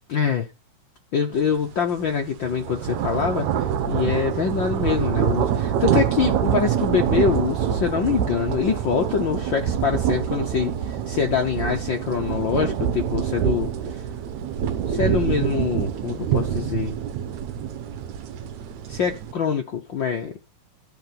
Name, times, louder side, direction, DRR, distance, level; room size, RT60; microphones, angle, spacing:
voice 1, 0.1-0.5 1.1-3.5 3.9-13.7 14.9-17.0 18.9-20.4, left 7 dB, 80° left, 1.0 m, -24 dB
sound 1, 1.5-1.7 2.1-19.3, right 9 dB, 65° right, 2.3 m, -25 dB
13.0 x 4.8 x 5.9 m
omnidirectional pair, 3.8 m